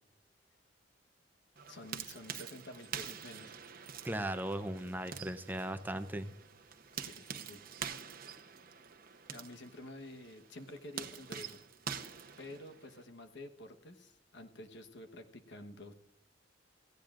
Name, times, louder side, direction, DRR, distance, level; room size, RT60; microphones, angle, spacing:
sound 1, 1.6-13.0, right 7 dB, 50° right, 0.9 m, -46 dB
voice 1, 1.7-3.5 6.9-7.6 9.3-11.6 12.4-15.9, left 1 dB, 65° left, 6 dB, 1.2 m, -50 dB
voice 2, 4.0-6.3, right 1 dB, 10° right, 9 dB, 0.6 m, -37 dB
17.5 x 16.0 x 2.5 m, 0.83 s
head